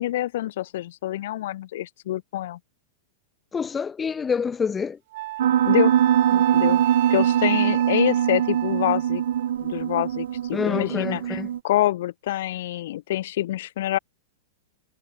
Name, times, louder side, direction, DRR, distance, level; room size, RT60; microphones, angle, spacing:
voice 1, 0.0-2.6 5.6-6.0 6.3-6.8 7.1-9.2 9.6-14.0, left 14 dB, 60° left, 1.0 m, -26 dB
voice 2, 3.5-5.0 10.5-11.5, left 6 dB, 10° left, 0.7 m, -27 dB
Wind instrument woodwind instrument, 5.1-9.5, right 18 dB, 50° right, 4.8 m, -31 dB
Piano, 5.4-11.6, right 10 dB, 85° right, 2.9 m, -22 dB
supercardioid pair, 160°, 0 cm